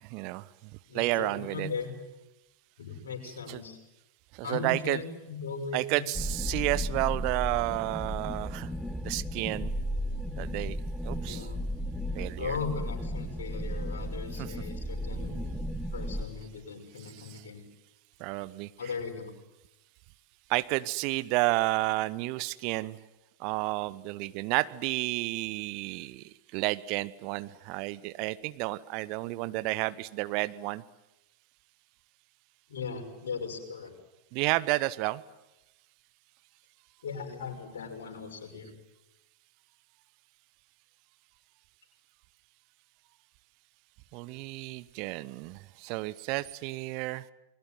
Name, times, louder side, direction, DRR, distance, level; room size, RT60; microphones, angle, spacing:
voice 1, 0.0-1.7 3.5-3.6 4.3-5.0 5.7-8.7 9.0-9.7 10.4-10.8 11.0-11.5 12.1-12.6 14.3-14.5 17.0-17.4 18.2-18.9 20.5-23.0 23.4-30.8 34.3-35.2 44.1-47.2, right 20 dB, 45° right, 16 dB, 0.9 m, -31 dB
voice 2, 0.9-1.9 2.8-3.8 4.4-6.0 11.2-11.6 12.4-15.6 15.9-17.6 18.8-19.3 32.7-33.9 37.0-38.7, left 5 dB, 65° left, 4 dB, 6.0 m, -38 dB
sound 1, 6.1-16.2, equal, 5° left, 1.6 m, -34 dB
28.5 x 21.5 x 9.3 m, 0.97 s
figure-of-eight pair, 90°, 0 cm